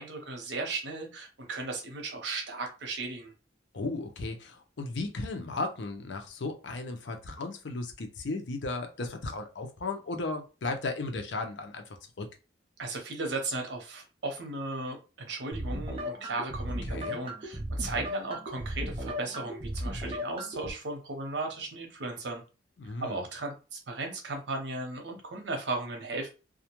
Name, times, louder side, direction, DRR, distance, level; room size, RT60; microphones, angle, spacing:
voice 1, 0.0-3.3 12.8-22.4 22.8-26.3, right 3 dB, 75° right, 3 dB, 0.8 m, -36 dB
voice 2, 3.7-11.8 12.2-12.3 16.9-17.2 22.8-23.2, left 3 dB, 80° left, 5 dB, 0.6 m, -35 dB
sound 1, 15.5-20.7, equal, 30° right, 0.5 m, -36 dB
2.3 x 2.1 x 2.9 m, 0.32 s
head